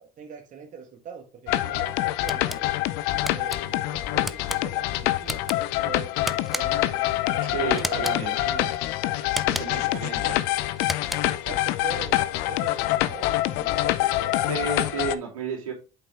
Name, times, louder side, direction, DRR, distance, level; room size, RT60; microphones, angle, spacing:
voice 1, 0.0-2.7 3.3-8.7 9.7-10.3 11.2-14.4, right 6 dB, 45° right, 1.4 m, -42 dB
sound 1, 1.5-15.2, left 15 dB, 70° left, 0.6 m, -26 dB
sound 2, 2.3-2.6 3.3-3.6 4.2-4.6 5.2-5.6 6.3-6.9 7.8-8.2 9.3-9.9 10.8-11.4, equal, ahead, 0.5 m, -33 dB
voice 2, 7.5-8.4 9.4-10.4 14.4-15.7, right 6 dB, 85° right, 2.8 m, -32 dB
8.1 x 5.6 x 3.3 m
hypercardioid pair, 70°, 18 cm